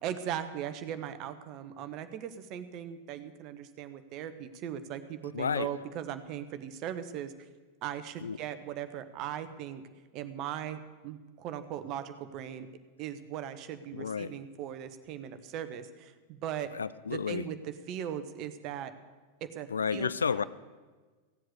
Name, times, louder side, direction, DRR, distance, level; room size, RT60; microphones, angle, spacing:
voice 1, 0.0-7.3 7.8-9.8 10.1-12.7 13.0-16.7 17.1-18.9 19.4-20.1, right 10 dB, 40° right, 11 dB, 1.0 m, -39 dB
voice 2, 5.3-5.7 8.2-8.4 13.9-14.3 16.7-17.4 19.7-20.4, left 6 dB, 70° left, 17 dB, 0.4 m, -31 dB
16.0 x 7.7 x 8.2 m, 1.4 s
figure-of-eight pair, 90°, 0 cm